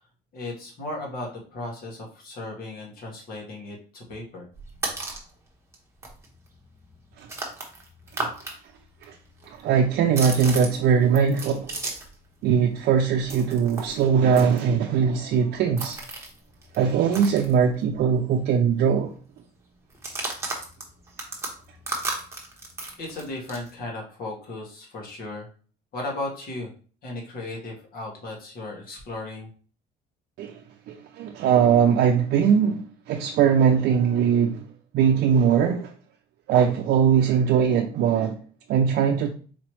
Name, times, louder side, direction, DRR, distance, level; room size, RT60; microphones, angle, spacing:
voice 1, 0.3-4.4 23.0-25.5 25.9-26.7 27.0-29.5, left 2 dB, 60° left, 1.8 m, -35 dB
sound 1, 4.5-5.3 5.7-5.8 6.0-8.6 8.8-12.2 12.5-18.1 18.4-18.5 18.8-19.2 19.9-23.7, right 2 dB, 15° right, 1.1 m, -35 dB
voice 2, 9.6-11.8 12.4-16.0 16.7-19.1 30.4-30.5 30.9-32.8 33.1-34.6 34.9-35.9 36.5-38.4 38.7-39.3, right 7 dB, 70° right, 0.5 m, -21 dB
4.1 x 3.0 x 3.0 m
cardioid pair, 110°, 17 cm